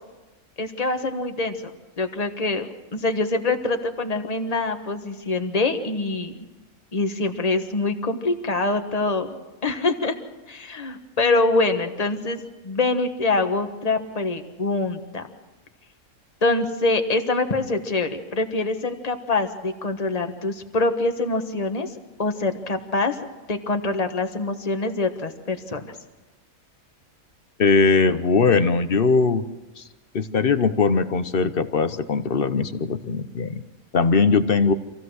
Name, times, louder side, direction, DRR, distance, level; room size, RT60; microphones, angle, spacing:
voice 1, 0.6-1.7 2.0-6.4 6.9-9.4 9.6-10.1 10.5-15.3 16.4-21.9 22.2-23.2 23.5-25.9, left 3 dB, 30° left, 6 dB, 1.4 m, -24 dB
voice 2, 27.6-29.5 29.8-29.9 30.1-33.6 33.9-34.7, left 4 dB, 45° left, 11 dB, 0.9 m, -20 dB
26.0 x 15.5 x 6.4 m, 1.2 s
omnidirectional pair, 1.5 m